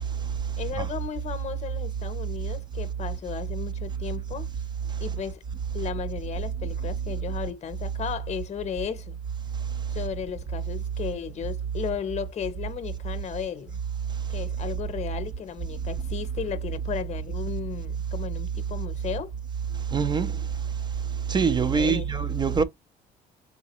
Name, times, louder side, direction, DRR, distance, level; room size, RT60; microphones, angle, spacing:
voice 1, 0.6-4.5 5.0-5.4 5.7-9.2 9.9-13.7 14.3-19.3 21.7-22.1, left 8 dB, 40° left, 0.8 m, -34 dB
voice 2, 19.9-20.3 21.3-22.6, right 5 dB, 25° right, 0.4 m, -23 dB
3.8 x 3.8 x 2.9 m
cardioid pair, 110°, 17 cm